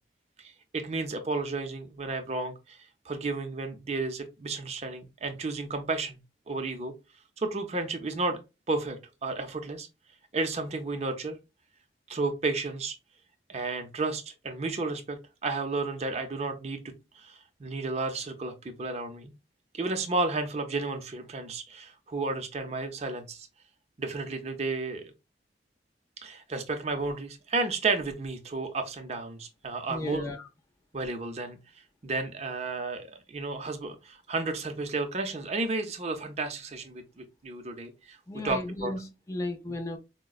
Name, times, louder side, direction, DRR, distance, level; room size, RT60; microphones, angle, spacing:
voice 1, 0.4-2.8 3.1-6.2 6.5-6.9 7.4-8.4 8.7-9.9 10.3-11.4 12.1-12.9 13.5-16.8 17.1-19.3 19.7-23.5 24.0-25.1 26.2-30.3 30.9-31.6 32.0-38.9, right 3 dB, 40° right, 0.6 m, -32 dB
voice 2, 29.9-30.5 38.3-40.0, left 2 dB, 15° left, 0.5 m, -35 dB
4.8 x 2.1 x 2.3 m
head